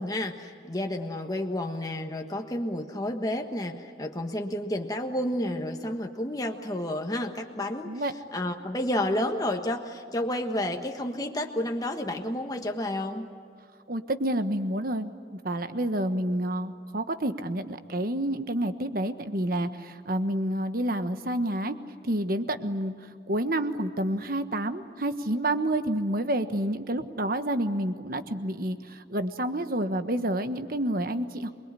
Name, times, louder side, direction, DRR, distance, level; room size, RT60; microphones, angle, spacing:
voice 1, 0.0-8.0 8.3-13.3, left 1 dB, 20° left, 3 dB, 1.4 m, -30 dB
voice 2, 13.9-21.8 22.0-22.9 23.3-31.5, right 1 dB, 50° right, 9 dB, 1.4 m, -29 dB
27.5 x 21.5 x 9.9 m, 2.2 s
head